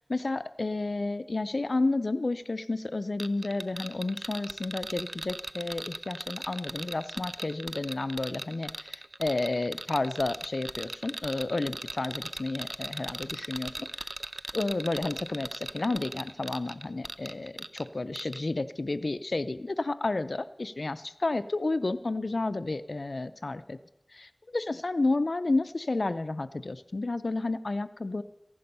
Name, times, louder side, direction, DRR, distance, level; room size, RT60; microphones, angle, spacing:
voice 1, 0.1-14.1 14.5-17.5 17.9-23.8 24.1-28.2, left 2 dB, 90° left, 13 dB, 0.5 m, -31 dB
sound 1, 3.2-17.9 18.2-18.4, right 2 dB, 75° right, 0.5 m, -38 dB
15.0 x 11.0 x 5.5 m, 0.85 s
wide cardioid pair, 40°, 0 cm